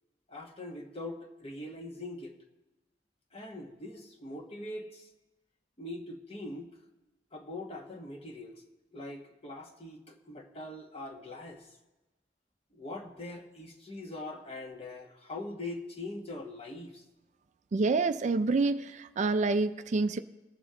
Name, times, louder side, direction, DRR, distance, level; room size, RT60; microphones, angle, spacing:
voice 1, 0.3-2.3 3.3-5.1 5.8-6.7 7.3-11.8 12.7-17.0, left 2 dB, 35° left, 2 dB, 1.3 m, -42 dB
voice 2, 17.7-20.2, right 3 dB, 40° right, 11 dB, 0.4 m, -27 dB
19.5 x 7.1 x 3.7 m, 1.1 s
head